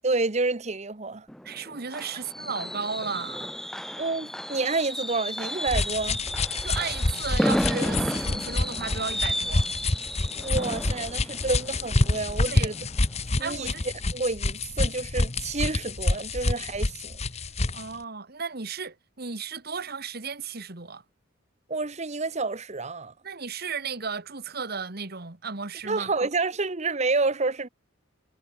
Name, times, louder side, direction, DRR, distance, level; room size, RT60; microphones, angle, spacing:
voice 1, 0.0-1.3 4.0-6.2 10.3-12.7 13.4-13.7 14.1-17.2 21.7-23.1 25.8-27.7, right 3 dB, 35° right, 1.0 m, -29 dB
Fireworks, 1.3-13.0 13.3-13.6 13.9-14.0, equal, ahead, 0.5 m, -32 dB
voice 2, 1.4-3.5 6.6-9.7 12.4-12.7 13.4-13.8 17.7-21.0 23.2-26.1, right 5 dB, 50° right, 1.8 m, -34 dB
sound 1, 5.7-17.9, left 2 dB, 30° left, 1.2 m, -27 dB
head